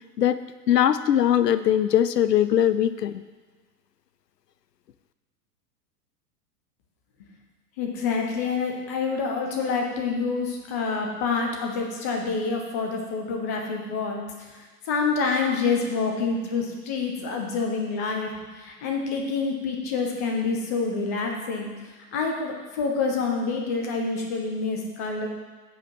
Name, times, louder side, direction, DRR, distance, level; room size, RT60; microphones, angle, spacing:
voice 1, 0.7-3.2, left 10 dB, 75° left, 13 dB, 0.6 m, -21 dB
voice 2, 7.8-21.7 22.1-25.3, left 4 dB, 10° left, 2 dB, 0.3 m, -27 dB
7.8 x 4.6 x 7.1 m, 1.4 s
figure-of-eight pair, 95°, 49 cm